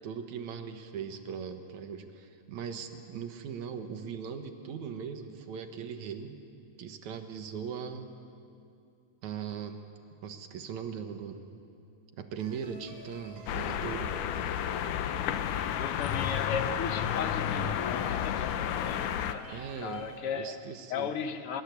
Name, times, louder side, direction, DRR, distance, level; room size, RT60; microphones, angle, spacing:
voice 1, 0.0-6.4 6.8-8.2 9.2-9.9 10.2-11.4 12.2-14.2 19.5-21.1, right 7 dB, 70° right, 7 dB, 2.7 m, -39 dB
sound 1, 12.4-20.2, right 1 dB, 55° right, 5.8 m, -49 dB
sound 2, 13.5-19.4, left 9 dB, 85° left, 2.5 m, -31 dB
voice 2, 15.8-20.5 20.9-21.6, left 7 dB, 70° left, 9 dB, 1.4 m, -37 dB
23.5 x 23.0 x 8.4 m, 2.6 s
omnidirectional pair, 3.6 m